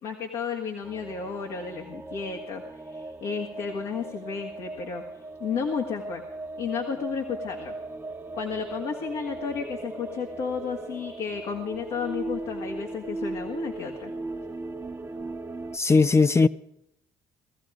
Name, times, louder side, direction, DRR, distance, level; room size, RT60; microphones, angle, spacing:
voice 1, 0.0-5.0 5.4-6.2 6.6-7.7 8.3-14.1, left 6 dB, 70° left, 1.8 m, -32 dB
sound 1, 0.8-15.8, right 2 dB, 20° right, 1.1 m, -38 dB
voice 2, 15.7-16.5, left 4 dB, 25° left, 0.5 m, -18 dB
18.0 x 14.0 x 5.0 m
hypercardioid pair, 60°, 10 cm